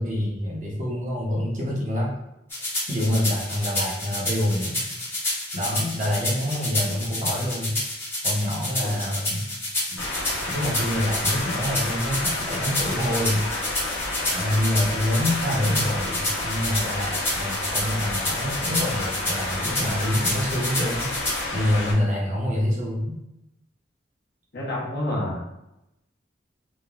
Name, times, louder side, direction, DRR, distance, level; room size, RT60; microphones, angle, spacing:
voice 1, 0.0-2.1 2.5-4.9 5.5-7.8 8.2-9.4 9.9-10.0 10.5-13.9 14.3-21.1 21.5-23.2, left 1 dB, 40° right, -3 dB, 0.7 m, -26 dB
sound 1, 2.5-21.4, left 1 dB, 10° left, 0.7 m, -29 dB
sound 2, 10.0-21.9, left 2 dB, 85° left, 0.9 m, -30 dB
voice 2, 24.5-25.4, left 1 dB, 60° left, -5 dB, 0.9 m, -28 dB
3.1 x 2.1 x 2.3 m, 0.88 s
head